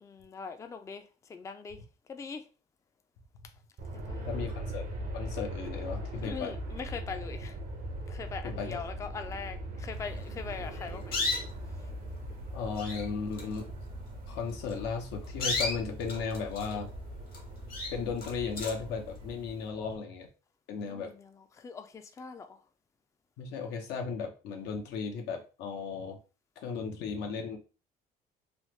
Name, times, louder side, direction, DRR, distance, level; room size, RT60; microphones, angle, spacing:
voice 1, 0.0-1.8 2.1-2.5 3.9-4.5 6.2-7.6 8.1-11.2 20.8-22.6, left 5 dB, 20° left, 0.3 m, -42 dB
Aircraft, 3.8-20.0, right 1 dB, 55° right, 0.6 m, -40 dB
voice 2, 4.3-4.8 5.1-6.5 8.4-8.8 12.5-13.7 14.3-16.9 17.9-20.3 20.7-21.1 23.4-26.2 26.6-27.6, left 5 dB, 90° left, 0.7 m, -35 dB
sound 1, 10.7-11.7 12.4-12.5 12.7-13.1 13.3-13.6 14.5-14.7 15.2-16.9 17.3-17.4 17.7-18.9, left 3 dB, 60° left, 1.0 m, -34 dB
3.1 x 2.0 x 3.0 m
cardioid pair, 110°, 17 cm